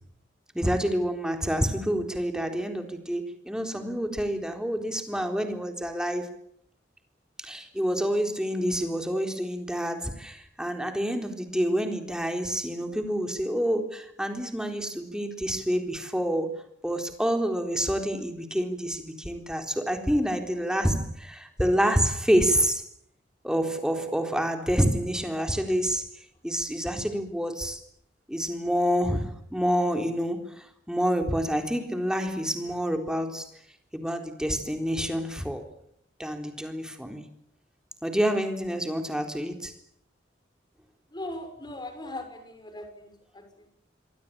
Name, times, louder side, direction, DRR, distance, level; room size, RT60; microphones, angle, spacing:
voice 1, 0.5-6.3 7.4-16.5 16.8-22.8 23.4-26.1 26.4-27.8 28.3-33.5 33.9-35.6 36.2-37.2 38.0-39.7, equal, 5° right, 3.9 m, -28 dB
voice 2, 41.1-43.1 43.3-43.4, left 1 dB, 25° left, 6.6 m, -38 dB
27.0 x 23.5 x 8.8 m
head